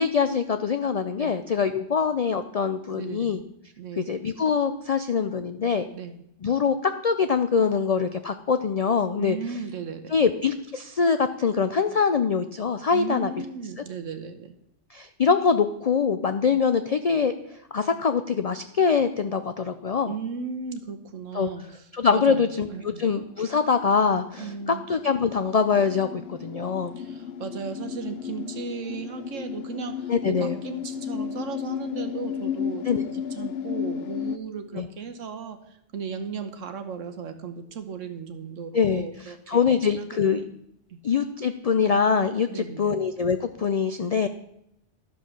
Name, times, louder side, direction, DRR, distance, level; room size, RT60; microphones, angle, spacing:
voice 1, 0.0-3.4 4.0-5.9 6.4-9.4 10.1-13.3 14.9-17.3 17.7-20.1 21.3-21.5 21.9-27.0 30.1-30.6 32.9-33.0 34.7-34.9 38.7-40.4 41.0-44.3, left 6 dB, 80° left, 9 dB, 0.3 m, -24 dB
voice 2, 2.9-3.3 3.8-4.1 5.9-6.1 9.2-10.2 12.9-14.5 20.0-23.0 24.4-24.8 27.0-35.6 35.9-39.6 40.0-40.5 40.9-41.0 42.5-42.9, right 5 dB, 85° right, 8 dB, 1.3 m, -36 dB
sound 1, 22.6-34.4, left 8 dB, 60° left, 0.8 m, -34 dB
12.0 x 5.4 x 6.4 m, 0.77 s
omnidirectional pair, 1.3 m